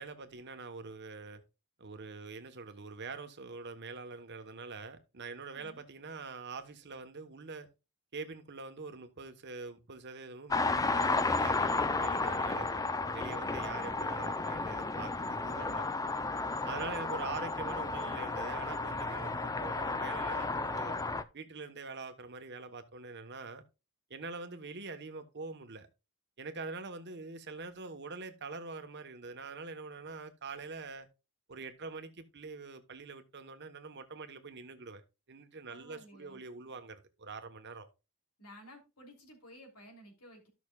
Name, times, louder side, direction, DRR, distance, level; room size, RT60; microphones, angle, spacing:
voice 1, 0.0-1.4 1.8-7.7 8.1-15.8 16.7-21.0 21.3-23.6 24.1-25.9 26.4-31.1 31.5-35.0 35.3-37.9, right 4 dB, 50° right, 1.1 m, -44 dB
sound 1, 10.5-21.2, left 3 dB, 15° left, 0.4 m, -33 dB
voice 2, 13.7-14.1 15.5-16.1 35.7-36.4 38.4-40.5, equal, 85° left, 3.1 m, -55 dB
14.0 x 6.1 x 2.3 m
head